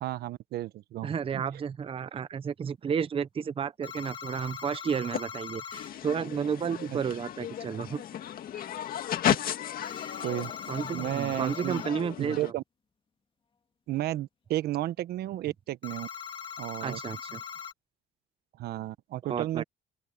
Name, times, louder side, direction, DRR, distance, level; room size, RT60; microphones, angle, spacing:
voice 1, 0.0-1.4 6.9-7.0 10.2-10.5 10.9-11.8 12.2-12.6 13.9-16.1 16.6-17.0 18.6-19.6, right 15 dB, 70° right, 1.0 m, -33 dB
voice 2, 1.0-8.0 10.7-12.5 16.8-17.4 19.3-19.6, right 7 dB, 35° right, 0.8 m, -32 dB
sound 1, 3.8-5.9 9.8-11.9 15.8-17.7, left 7 dB, 30° left, 2.6 m, -41 dB
sound 2, 5.1-5.2 5.7-12.5, left 10 dB, 60° left, 2.0 m, -34 dB
open air
cardioid pair, 110°, 17 cm